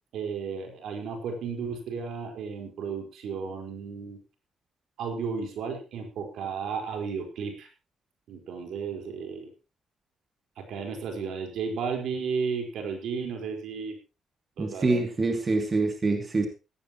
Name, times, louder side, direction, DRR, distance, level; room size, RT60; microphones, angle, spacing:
voice 1, 0.1-4.2 5.0-7.7 8.3-9.5 10.6-14.0 14.6-14.9 15.8-15.9, right 5 dB, 75° right, 4.6 m, -33 dB
voice 2, 14.6-16.5, right 3 dB, 30° right, 2.7 m, -25 dB
16.5 x 14.5 x 3.1 m
cardioid pair, 90°, 0 cm